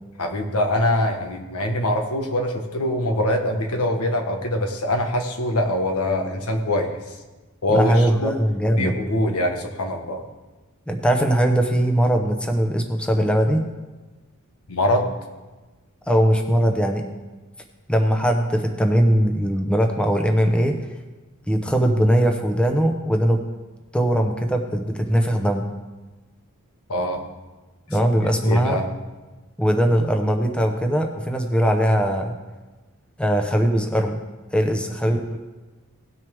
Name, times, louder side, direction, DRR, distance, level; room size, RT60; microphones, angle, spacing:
voice 1, 0.2-7.0 7.6-8.4 8.8-10.2 14.7-15.1 26.9-27.2 28.4-28.9, left 1 dB, 90° left, 4 dB, 1.4 m, -23 dB
voice 2, 7.7-9.0 10.9-13.6 16.1-17.1 17.9-20.8 21.5-23.4 23.9-25.7 27.9-28.8 29.6-32.4 33.2-34.2 34.5-35.4, equal, 5° left, 3 dB, 0.8 m, -20 dB
18.0 x 6.5 x 3.5 m, 1.2 s
head